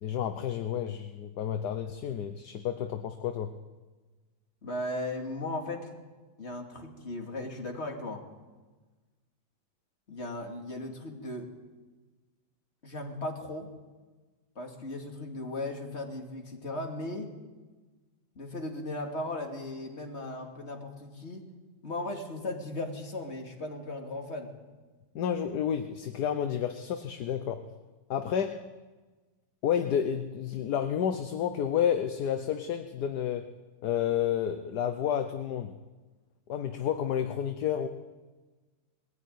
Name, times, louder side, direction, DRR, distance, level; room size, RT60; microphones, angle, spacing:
voice 1, 0.0-3.5 25.1-27.6 28.1-28.7 29.6-33.5 33.8-35.7 36.5-37.9, left 9 dB, 60° left, 8 dB, 1.3 m, -30 dB
voice 2, 4.6-5.9 6.4-8.3 10.1-11.5 12.8-13.7 14.5-17.3 18.3-21.5 21.8-24.5, left 2 dB, 35° left, 2 dB, 2.9 m, -37 dB
21.0 x 15.0 x 9.4 m, 1.3 s
omnidirectional pair, 2.2 m